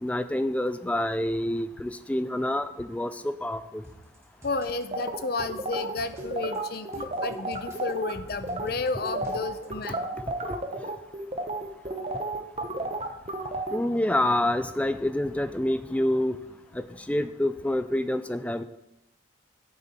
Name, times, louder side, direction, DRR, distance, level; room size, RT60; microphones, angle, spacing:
voice 1, 0.0-3.8 13.7-16.4 16.7-18.6, left 1 dB, 5° left, 12 dB, 0.3 m, -27 dB
sound 1, 3.8-9.9, right 1 dB, 15° right, 1.6 m, -51 dB
voice 2, 4.4-10.0 12.8-12.9, left 3 dB, 50° left, 11 dB, 0.6 m, -32 dB
sound 2, 4.9-8.1 8.4-8.7 9.0-13.8, right 2 dB, 30° right, 0.8 m, -32 dB
9.1 x 8.7 x 4.3 m, 0.90 s
head